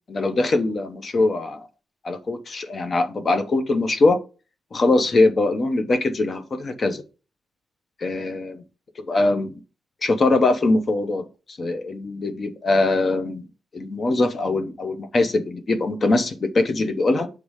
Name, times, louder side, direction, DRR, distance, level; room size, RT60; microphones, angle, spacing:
voice 1, 0.1-1.6 2.0-4.2 4.7-7.0 8.0-8.6 9.1-9.5 10.0-11.2 11.6-13.4 13.7-17.3, left 2 dB, 35° left, 0.7 m, -22 dB
6.7 x 3.2 x 4.8 m
wide cardioid pair, 170°, 0 cm